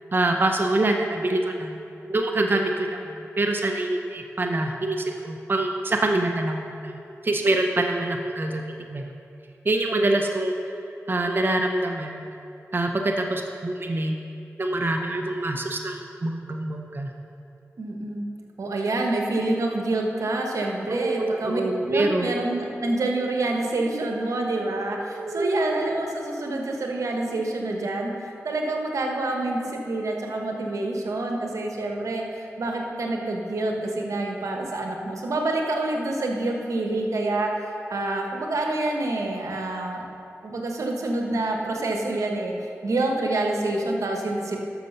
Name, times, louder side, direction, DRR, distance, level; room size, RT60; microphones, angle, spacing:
voice 1, 0.1-1.8 2.1-7.0 7.2-9.1 9.6-10.5 11.1-12.2 12.7-14.2 14.6-17.1 20.9-22.3 25.1-25.7, right 2 dB, 40° right, 3 dB, 0.8 m, -25 dB
voice 2, 17.8-18.2 18.6-28.1 28.4-40.0 40.4-44.6, right 2 dB, 80° right, 1 dB, 1.3 m, -27 dB
12.0 x 6.6 x 5.5 m, 2.7 s
cardioid pair, 50°, 5 cm